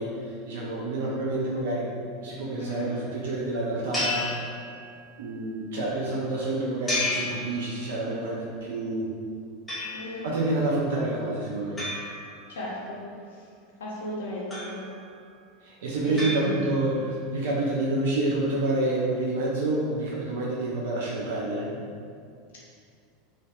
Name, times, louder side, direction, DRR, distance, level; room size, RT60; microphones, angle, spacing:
voice 1, 0.0-1.9 2.2-4.3 5.2-9.1 10.2-11.8 15.6-21.8, right 2 dB, 65° right, -4 dB, 0.3 m, -28 dB
voice 2, 2.6-2.9 9.9-10.3 12.5-13.0 13.3-13.5 13.8-14.8 16.0-16.6, left 1 dB, 70° left, -6 dB, 0.5 m, -35 dB
sound 1, 3.9-5.1 6.9-8.1 9.7-10.4 11.8-12.9 14.5-15.2 16.2-17.1, left 2 dB, 10° left, 0.9 m, -33 dB
2.6 x 2.1 x 2.3 m, 2.3 s
figure-of-eight pair, 80°, 0 cm